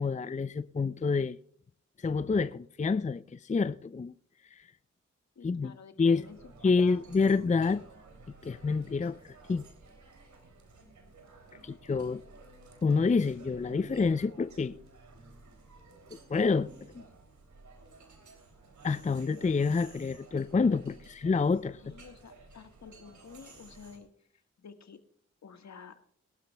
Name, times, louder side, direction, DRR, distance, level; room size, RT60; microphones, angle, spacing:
voice 1, 0.0-1.4 2.0-4.1 4.5-4.7 5.4-5.7 6.0-6.3 6.6-7.8 8.4-9.7 11.6-12.2 12.8-14.7 16.3-16.7 18.8-21.8, left 4 dB, 25° left, 0.5 m, -28 dB
voice 2, 5.3-6.4 6.6-7.1 21.7-25.0 25.4-26.0, left 6 dB, 70° left, 1.7 m, -51 dB
sound 1, 6.2-24.0, right 3 dB, 80° right, 3.0 m, -54 dB
21.0 x 12.5 x 2.3 m
cardioid pair, 40°, 29 cm